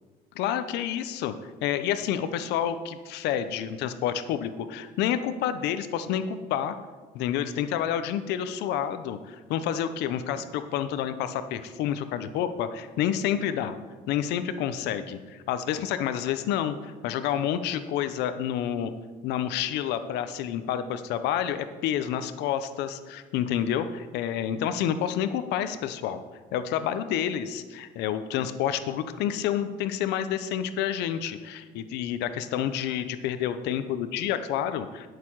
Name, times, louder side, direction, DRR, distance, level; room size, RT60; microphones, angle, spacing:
voice 1, 0.3-1.3 1.6-6.8 7.1-13.7 14.1-18.9 19.2-26.2 26.5-35.1, left 10 dB, 90° left, 11 dB, 0.7 m, -29 dB
12.5 x 6.7 x 4.6 m, 1.4 s
cardioid pair, 110°, 17 cm